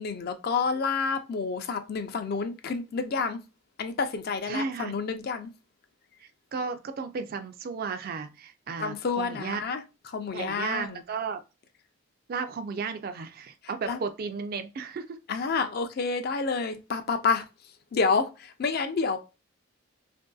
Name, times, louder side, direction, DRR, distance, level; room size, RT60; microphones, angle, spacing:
voice 1, 0.0-3.4 3.8-5.5 8.8-9.8 10.1-11.0 13.9-14.0 15.3-17.4 17.9-19.2, left 4 dB, 50° left, 0.4 m, -29 dB
voice 2, 4.5-5.0 6.2-9.6 10.3-11.4 12.3-15.2, right 5 dB, 45° right, 0.3 m, -34 dB
2.9 x 2.6 x 2.2 m
head